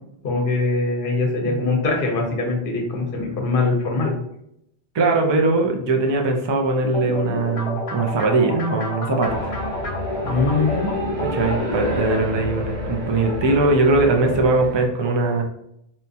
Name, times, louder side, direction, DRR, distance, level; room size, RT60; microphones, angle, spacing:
voice 1, 0.2-4.1 10.2-10.9, left 3 dB, 60° left, 1 dB, 1.0 m, -22 dB
voice 2, 4.9-9.5 11.3-15.4, right 3 dB, 40° right, 2 dB, 0.4 m, -20 dB
sound 1, 6.8-12.0, left 2 dB, 40° left, 0.5 m, -29 dB
sound 2, 9.2-14.9, equal, 70° right, 1.2 m, -29 dB
4.4 x 2.3 x 2.7 m, 0.77 s
omnidirectional pair, 1.1 m